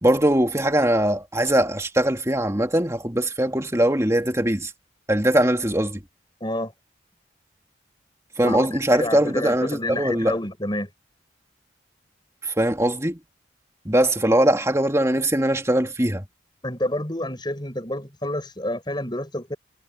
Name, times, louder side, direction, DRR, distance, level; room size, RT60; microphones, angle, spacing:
voice 1, 0.0-4.7 5.1-6.0 8.4-10.3 12.6-13.2 13.9-16.2, right 1 dB, 15° right, 2.4 m, -21 dB
voice 2, 6.4-6.7 8.4-10.9 16.6-19.6, left 1 dB, 25° left, 7.2 m, -29 dB
head